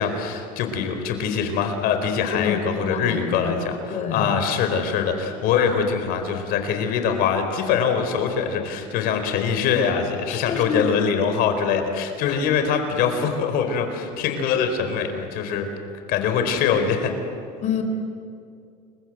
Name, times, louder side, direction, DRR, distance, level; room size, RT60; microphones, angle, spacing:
voice 1, 0.0-15.7 16.1-17.1, left 6 dB, 65° left, 6 dB, 4.4 m, -23 dB
voice 2, 2.3-4.3 10.3-11.0 12.3-12.4 17.6-17.8, left 7 dB, 45° left, 7 dB, 4.3 m, -28 dB
29.5 x 23.0 x 8.0 m, 2.4 s
cardioid pair, 145°, 17 cm